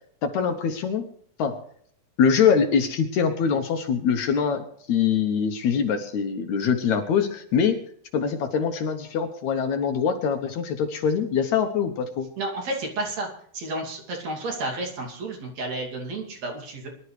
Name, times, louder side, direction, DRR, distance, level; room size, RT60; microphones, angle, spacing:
voice 1, 0.2-1.0 1.4-1.6 2.2-7.8 8.1-12.3, left 6 dB, 70° left, 6 dB, 2.1 m, -23 dB
voice 2, 12.4-13.3 13.5-16.9, right 2 dB, 55° right, 1 dB, 3.7 m, -31 dB
23.5 x 12.0 x 3.3 m, 0.63 s
omnidirectional pair, 3.9 m